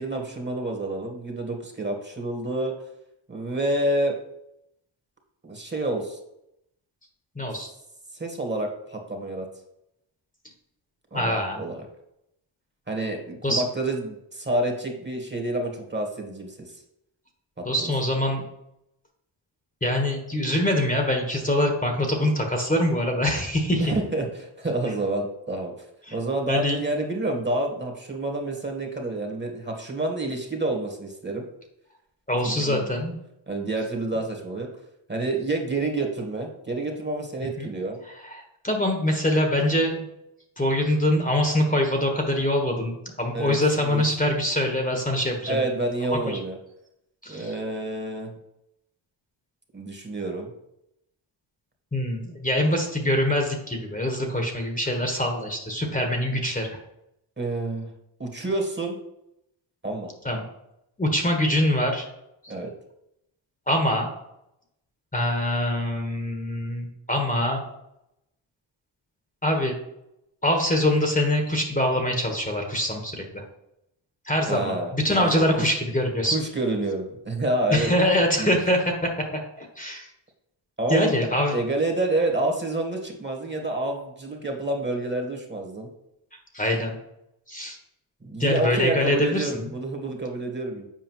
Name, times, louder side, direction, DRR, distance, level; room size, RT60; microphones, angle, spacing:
voice 1, 0.0-2.7 3.3-4.2 5.4-6.2 8.1-9.4 11.1-11.8 12.9-16.6 17.6-17.9 23.8-25.7 26.1-31.5 32.4-32.9 33.5-34.7 35.1-38.0 43.3-44.0 45.5-46.6 47.3-48.3 49.7-50.5 57.4-57.9 58.2-59.0 59.8-60.1 62.5-62.7 74.5-75.4 76.3-77.9 78.4-78.6 80.8-85.9 88.2-90.9, right 2 dB, 20° right, 2 dB, 1.5 m, -28 dB
voice 2, 7.4-7.7 11.1-11.6 13.4-13.6 17.6-18.4 19.8-23.8 26.1-26.2 26.5-26.8 32.3-33.1 37.6-37.7 38.2-40.1 40.6-45.6 46.3-46.4 47.2-47.5 51.9-56.8 60.2-60.4 61.0-62.0 62.4-62.5 63.7-64.1 65.1-67.6 69.4-69.7 70.4-73.4 74.3-76.3 77.7-79.1 79.6-80.1 80.9-81.5 86.5-87.0 87.5-87.8 88.4-89.6, left 1 dB, 15° left, 2 dB, 1.3 m, -24 dB
7.5 x 4.8 x 3.1 m, 0.83 s
cardioid pair, 65°, 49 cm